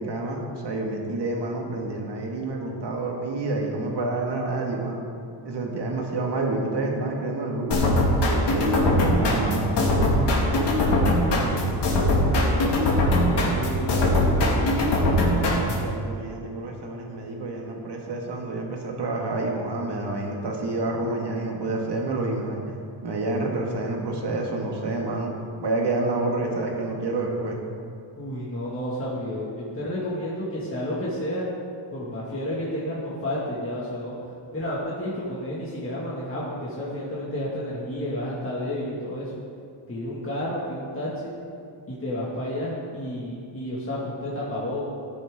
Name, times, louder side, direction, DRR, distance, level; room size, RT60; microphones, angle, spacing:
voice 1, 0.0-5.0 5.4-8.0 8.5-12.7 15.2-22.6 23.0-25.3 25.6-27.6, right 2 dB, 60° right, 0 dB, 2.2 m, -29 dB
sound 1, 7.7-15.9, left 1 dB, 60° left, 2.3 m, -21 dB
voice 2, 13.5-14.8 28.2-31.5 31.9-34.2 34.5-39.3 39.9-41.3 41.9-44.8, left 1 dB, 25° left, -8 dB, 2.1 m, -31 dB
14.5 x 9.8 x 3.8 m, 2.4 s
cardioid pair, 125°, 47 cm